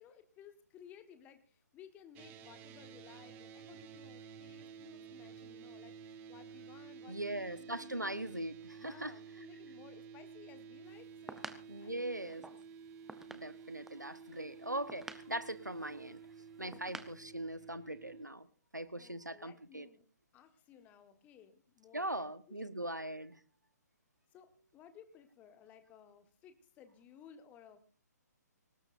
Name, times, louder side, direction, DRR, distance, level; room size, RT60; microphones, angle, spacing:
voice 1, 0.0-8.2 8.8-11.4 11.8-12.7 16.6-16.8 18.9-20.1 20.3-22.7 24.3-27.8, left 8 dB, 15° left, 1.5 m, -59 dB
sound 1, 2.1-18.2, right 6 dB, 20° right, 1.2 m, -52 dB
voice 2, 7.1-9.1 11.7-12.4 13.3-16.2 16.6-18.5 18.7-19.9 21.9-23.4, right 1 dB, 90° right, 1.2 m, -40 dB
sound 2, 10.9-17.2, right 2 dB, 5° right, 0.8 m, -51 dB
23.0 x 19.0 x 2.6 m
figure-of-eight pair, 135°, 9 cm